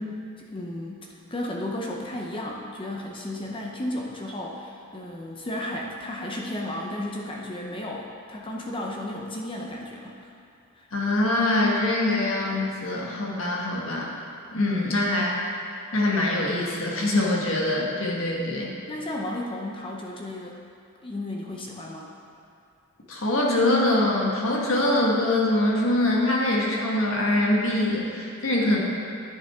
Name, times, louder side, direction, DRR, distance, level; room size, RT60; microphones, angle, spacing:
voice 1, 0.4-10.2 10.8-10.9 14.8-15.0 18.9-20.6 21.0-22.1, left 1 dB, 25° left, -1 dB, 0.7 m, -34 dB
voice 2, 10.9-14.1 14.5-15.3 15.9-18.7 23.1-28.8, left 1 dB, 70° left, -3 dB, 1.5 m, -23 dB
11.0 x 6.4 x 3.6 m, 2.6 s
head